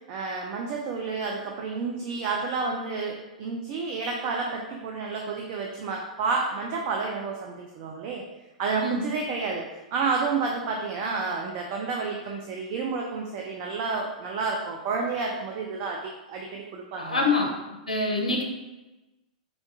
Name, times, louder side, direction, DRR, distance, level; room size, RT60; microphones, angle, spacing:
voice 1, 0.1-8.2 8.6-16.0 16.3-17.3, right 4 dB, 45° right, 1 dB, 0.4 m, -30 dB
voice 2, 17.0-17.5 17.9-18.4, left 3 dB, 85° left, 1 dB, 0.5 m, -25 dB
4.3 x 2.3 x 2.7 m, 1.1 s
figure-of-eight pair, 100°, 4 cm